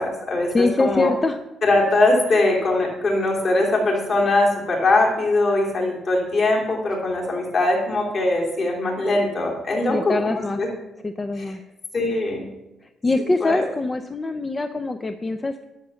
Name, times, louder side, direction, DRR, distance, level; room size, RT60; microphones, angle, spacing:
voice 1, 0.0-1.1 1.6-10.7 11.4-11.5 11.9-12.4 13.4-13.6, left 2 dB, 45° left, -1 dB, 3.2 m, -21 dB
voice 2, 0.5-1.4 2.3-2.4 9.9-10.6 11.0-11.6 13.0-15.6, left 2 dB, 20° left, 8 dB, 0.5 m, -23 dB
11.0 x 6.3 x 7.0 m, 0.97 s
cardioid pair, 135°, 0 cm